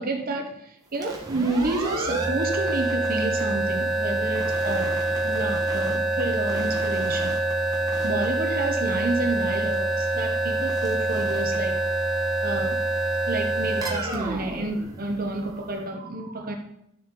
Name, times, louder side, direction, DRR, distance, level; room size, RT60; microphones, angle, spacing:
voice 1, 0.0-5.0 5.2-7.3 8.0-11.8 12.4-12.8 13.3-16.5, right 2 dB, 45° right, 3 dB, 1.0 m, -30 dB
sound 1, 0.9-15.6, right 2 dB, 20° right, 1.6 m, -26 dB
11.5 x 7.1 x 3.9 m, 0.78 s
head